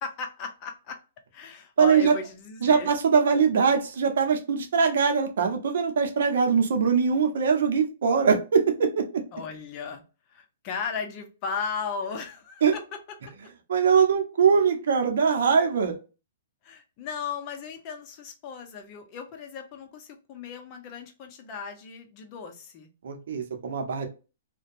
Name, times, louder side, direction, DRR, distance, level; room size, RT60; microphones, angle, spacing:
voice 1, 0.0-1.0 1.3-2.9 9.3-10.0 10.3-13.0 16.6-22.9, left 6 dB, 35° left, 0.7 m, -36 dB
voice 2, 1.8-2.1 2.6-9.2 12.6-12.7 13.7-16.0 23.0-24.1, right 6 dB, 70° right, 0.7 m, -22 dB
2.7 x 2.2 x 2.5 m
hypercardioid pair, 140°, 0 cm